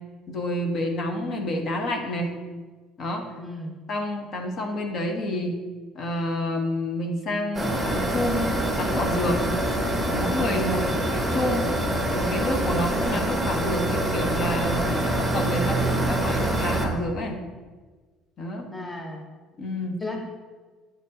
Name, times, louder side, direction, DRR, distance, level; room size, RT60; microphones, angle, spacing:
voice 1, 0.3-2.3 3.0-3.2 3.9-5.6 5.9-8.5 8.8-9.4 10.1-10.8 11.1-11.6 12.1-17.4 18.4-18.7 19.6-20.0, left 1 dB, 50° left, 3 dB, 1.1 m, -28 dB
voice 2, 3.4-3.7 10.6-11.0 18.7-19.2 20.0-20.2, left 2 dB, 20° left, 2 dB, 0.9 m, -35 dB
sound 1, 7.5-16.9, right 1 dB, 5° right, 1.5 m, -25 dB
8.6 x 5.3 x 2.8 m, 1.4 s
supercardioid pair, 90°, 0 cm